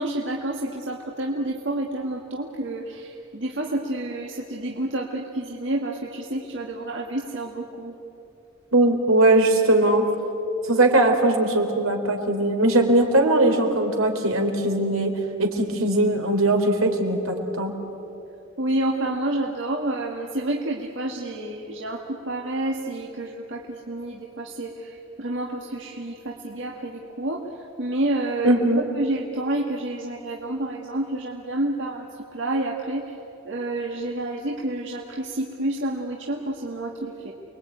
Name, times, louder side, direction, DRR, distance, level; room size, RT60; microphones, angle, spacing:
voice 1, 0.0-7.9 18.6-27.4 27.8-28.6 29.0-32.1 32.3-33.1 33.5-37.3, right 1 dB, 60° right, -1 dB, 2.0 m, -29 dB
voice 2, 8.7-10.1 10.7-15.1 15.4-17.7 28.4-28.8, right 1 dB, 80° right, 4 dB, 3.6 m, -20 dB
29.0 x 22.0 x 9.3 m, 2.9 s
head